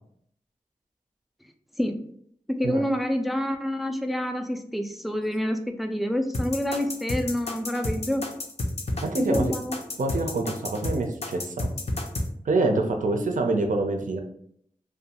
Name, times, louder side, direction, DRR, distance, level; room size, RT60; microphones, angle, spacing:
voice 1, 2.5-8.2 9.2-9.8, equal, ahead, 5 dB, 0.3 m, -27 dB
sound 1, 6.3-12.3, left 1 dB, 50° left, 0.5 m, -30 dB
voice 2, 9.1-9.5 10.0-11.7 12.4-14.2, right 2 dB, 70° right, 4 dB, 0.4 m, -26 dB
2.4 x 2.2 x 2.8 m, 0.66 s
cardioid pair, 45°, 14 cm